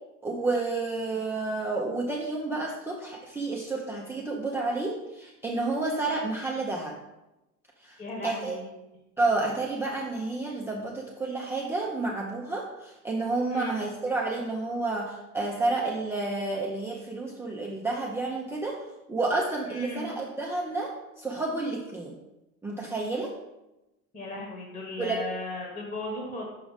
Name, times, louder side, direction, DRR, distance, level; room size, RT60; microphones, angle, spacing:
voice 1, 0.2-6.9 7.8-8.6 9.2-18.8 19.1-20.9 21.2-22.1 22.6-23.3 25.0-25.2, right 3 dB, 5° right, -4 dB, 0.6 m, -30 dB
voice 2, 8.0-8.7 13.5-13.8 19.7-20.1 24.1-26.4, left 2 dB, 20° left, -1 dB, 1.3 m, -36 dB
6.0 x 4.8 x 4.0 m, 0.98 s
supercardioid pair, 110°, 42 cm